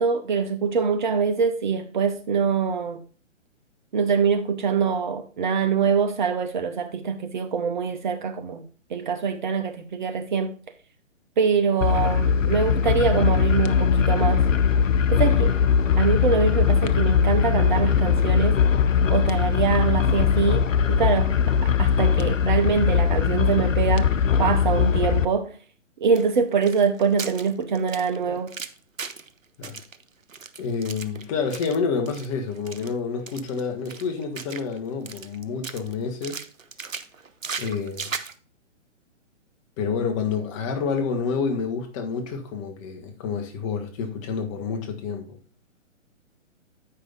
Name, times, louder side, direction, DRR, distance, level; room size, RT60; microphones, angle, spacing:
voice 1, 0.0-3.0 3.9-8.6 8.9-10.6 11.4-14.5 15.1-15.5 16.0-18.6 19.1-21.3 21.6-24.1 24.4-25.6 26.0-28.5, right 6 dB, 40° right, 0.7 m, -24 dB
sound 1, 11.8-25.3, left 7 dB, 75° left, 0.7 m, -20 dB
sound 2, 26.1-29.3 29.6-31.8 32.1-32.3 32.5-32.9 33.3-34.8 35.1-35.9 36.2-38.3, right 5 dB, 85° right, 0.8 m, -37 dB
voice 2, 30.6-36.4 37.6-38.1 39.8-45.4, left 5 dB, 25° left, 1.2 m, -28 dB
8.4 x 5.5 x 4.0 m
figure-of-eight pair, 130°, 39 cm